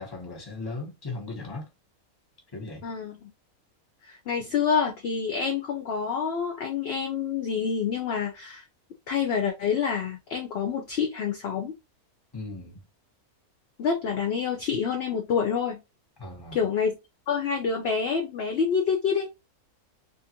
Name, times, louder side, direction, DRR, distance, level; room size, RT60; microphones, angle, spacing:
voice 1, 0.0-1.7 2.5-2.8 12.3-12.8 16.2-16.6, left 3 dB, 20° left, 0.9 m, -37 dB
voice 2, 2.8-3.3 4.0-8.6 9.1-11.7 13.8-15.8 16.5-16.9 17.3-19.3, left 6 dB, 65° left, 0.6 m, -27 dB
2.7 x 2.4 x 2.8 m
omnidirectional pair, 1.5 m